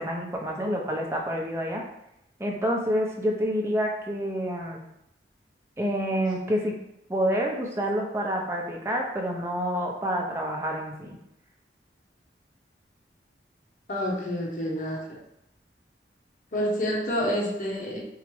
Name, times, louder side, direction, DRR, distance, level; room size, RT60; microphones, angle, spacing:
voice 1, 0.0-1.8 2.4-4.8 5.8-6.8 7.1-11.2, equal, 15° right, -1 dB, 0.5 m, -28 dB
voice 2, 13.9-15.2 16.5-18.0, equal, 50° left, -3 dB, 0.7 m, -28 dB
4.6 x 2.0 x 3.0 m, 0.81 s
head